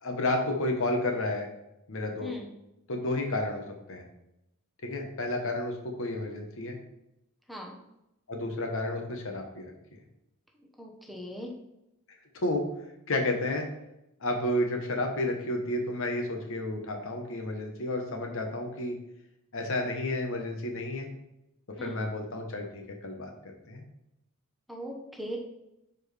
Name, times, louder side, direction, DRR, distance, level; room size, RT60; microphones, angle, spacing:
voice 1, 0.0-1.5 1.9-2.3 2.9-4.0 4.8-6.8 8.3-9.7 12.4-12.7 13.1-13.6 14.2-19.0 19.5-21.1 21.8-23.8, left 1 dB, 65° left, 3 dB, 1.2 m, -31 dB
voice 2, 10.8-11.5 21.8-22.0 24.7-25.4, equal, ahead, -1 dB, 0.9 m, -39 dB
9.8 x 4.5 x 3.4 m, 0.88 s
head